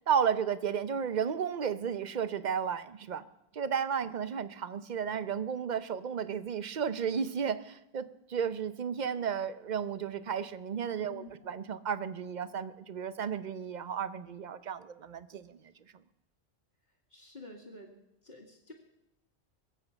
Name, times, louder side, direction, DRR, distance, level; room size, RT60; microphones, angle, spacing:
voice 1, 0.1-3.2 3.5-15.6, right 7 dB, 50° right, 14 dB, 0.7 m, -33 dB
voice 2, 11.1-11.5 17.1-17.9 18.2-18.7, left 2 dB, 50° left, -4 dB, 2.0 m, -49 dB
22.0 x 8.2 x 6.8 m, 0.86 s
omnidirectional pair, 1.1 m